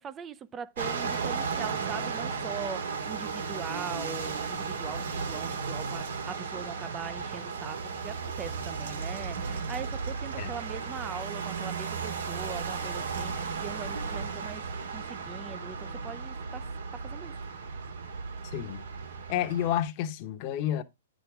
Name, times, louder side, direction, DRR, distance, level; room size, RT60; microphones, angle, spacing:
voice 1, 0.0-14.7 14.9-17.4, right 6 dB, 15° right, 0.5 m, -41 dB
sound 1, 0.8-19.8, right 5 dB, 90° right, 2.1 m, -35 dB
voice 2, 18.5-18.8 19.3-20.8, left 11 dB, 35° left, 0.9 m, -30 dB
9.6 x 6.3 x 3.5 m
hypercardioid pair, 155°, 0 cm